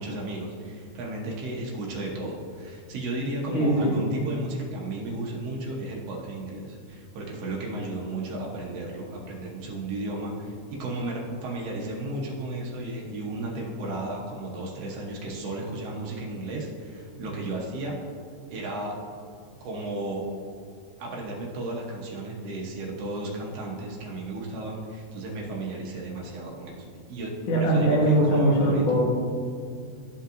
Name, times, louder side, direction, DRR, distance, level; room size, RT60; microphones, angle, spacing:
voice 1, 0.0-17.9 18.5-19.0 19.6-20.2 21.0-29.0, right 2 dB, 75° right, -2 dB, 1.4 m, -34 dB
voice 2, 3.5-4.0 27.5-29.2, right 1 dB, 60° left, -3 dB, 1.3 m, -21 dB
12.0 x 5.5 x 2.6 m, 2.3 s
omnidirectional pair, 4.2 m